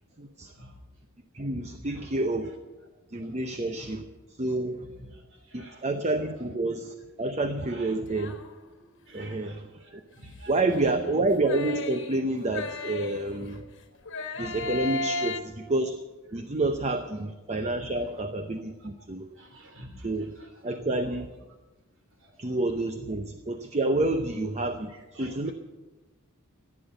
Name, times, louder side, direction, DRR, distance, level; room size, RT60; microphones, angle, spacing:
voice 1, 0.2-0.5 1.3-2.5 3.1-4.0 4.4-4.8 5.5-8.3 9.1-9.6 10.5-13.6 14.4-16.0 16.3-19.3 20.0-20.3 20.6-21.3 22.4-25.5, right 2 dB, 30° right, 7 dB, 0.7 m, -29 dB
voice 2, 1.6-2.1 2.4-2.5 3.2-3.3 3.7-3.9 4.8-5.8 7.6-8.1 9.1-11.0 13.3-13.6 14.3-14.7 15.1-15.2 16.6-16.7 17.7-18.1 18.8-18.9 19.3-21.1 22.2-22.4 23.0-23.1 24.2-24.3 24.9-25.5, equal, 60° right, 4 dB, 3.0 m, -47 dB
sound 1, 8.1-8.9 10.8-13.6 14.1-15.4, left 3 dB, 55° left, 1.5 m, -35 dB
15.0 x 9.9 x 8.0 m, 1.2 s
head